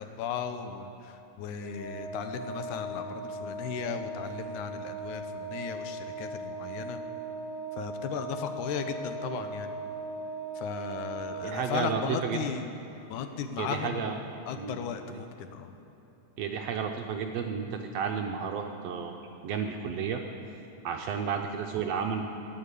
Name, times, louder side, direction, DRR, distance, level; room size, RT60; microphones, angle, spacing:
voice 1, 0.0-7.0 7.7-9.7 10.6-12.7 13.1-14.0 14.5-15.8, left 7 dB, 80° left, 8 dB, 2.2 m, -36 dB
Organ, 1.6-12.3, right 2 dB, 15° right, 2.6 m, -38 dB
voice 2, 11.4-12.4 13.6-14.2 14.6-14.8 15.1-15.2 16.4-19.1 19.4-20.2 20.8-22.2, right 6 dB, 75° right, 3 dB, 1.6 m, -32 dB
13.5 x 9.4 x 8.2 m, 3.0 s
omnidirectional pair, 3.5 m